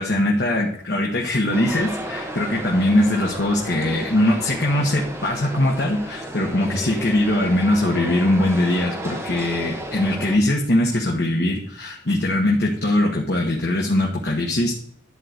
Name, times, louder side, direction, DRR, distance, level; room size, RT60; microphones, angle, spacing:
voice 1, 0.0-14.7, left 1 dB, 65° left, -1 dB, 1.2 m, -21 dB
sound 1, 1.5-10.4, right 1 dB, 15° right, 1.2 m, -33 dB
11.0 x 3.9 x 7.6 m, 0.67 s
head